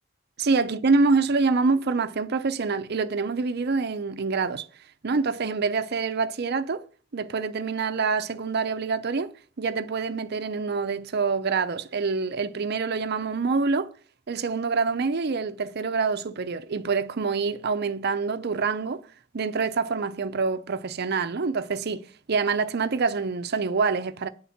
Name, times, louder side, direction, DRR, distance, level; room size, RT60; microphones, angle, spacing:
voice 1, 0.4-4.7 5.0-6.8 7.1-13.9 14.3-19.0 19.3-24.3, right 4 dB, 50° right, 0.5 m, -26 dB
9.2 x 4.3 x 7.0 m
head